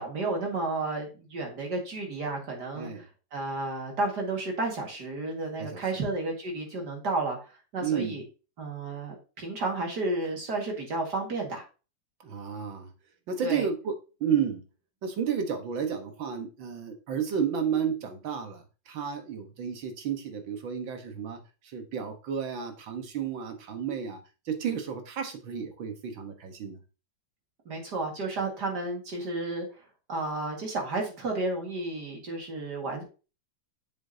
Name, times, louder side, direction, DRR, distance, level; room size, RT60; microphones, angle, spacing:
voice 1, 0.0-3.1 3.3-7.4 7.7-8.2 8.6-11.6 13.4-13.6 27.7-29.7 30.1-33.0, right 2 dB, 60° right, 0 dB, 2.5 m, -32 dB
voice 2, 2.8-3.1 5.6-5.8 7.8-8.2 12.2-12.9 13.3-14.0 14.2-14.6 15.0-21.4 21.7-24.2 24.5-26.8, right 7 dB, 85° right, 6 dB, 2.1 m, -32 dB
7.7 x 7.2 x 2.8 m, 0.33 s
omnidirectional pair, 2.0 m